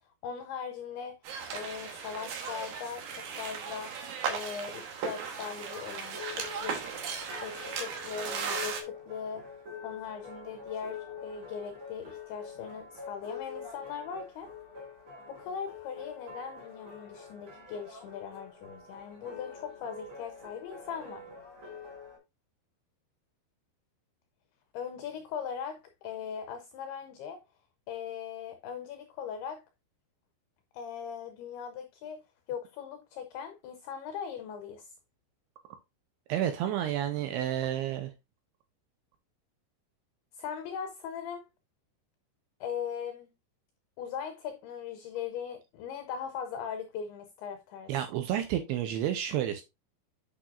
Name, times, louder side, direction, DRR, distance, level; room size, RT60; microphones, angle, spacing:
voice 1, 0.2-1.2 1.5-3.9 4.3-6.8 7.4-9.5 9.8-14.5 15.3-21.3 24.7-27.4 27.9-29.6 30.7-32.2 32.5-34.9 40.3-41.5 42.6-43.3 44.0-47.9, left 7 dB, 85° left, 2.2 m, -39 dB
sound 1, 1.2-8.8, right 6 dB, 70° right, 2.6 m, -37 dB
sound 2, 6.0-22.2, left 5 dB, 40° right, 3.9 m, -45 dB
voice 2, 36.3-38.1 47.9-49.6, right 11 dB, 85° right, 2.4 m, -30 dB
8.6 x 5.8 x 2.5 m
omnidirectional pair, 5.3 m